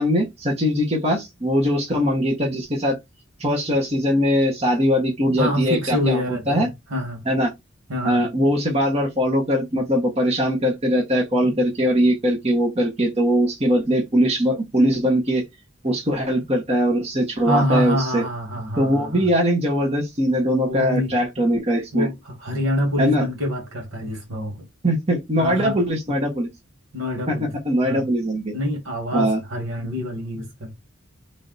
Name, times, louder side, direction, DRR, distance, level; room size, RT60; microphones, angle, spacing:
voice 1, 0.0-3.0 3.4-6.7 7.2-7.5 8.0-15.4 15.8-18.2 18.8-22.1 23.0-23.2 24.8-26.5 27.3-28.5 29.1-29.4, equal, 30° right, 1.1 m, -21 dB
voice 2, 5.4-7.2 7.9-8.2 17.4-19.2 20.7-21.1 21.9-22.1 22.4-24.7 25.4-25.8 26.9-27.5 27.8-28.1 28.5-30.8, equal, 90° right, 1.9 m, -26 dB
3.3 x 2.7 x 4.0 m
head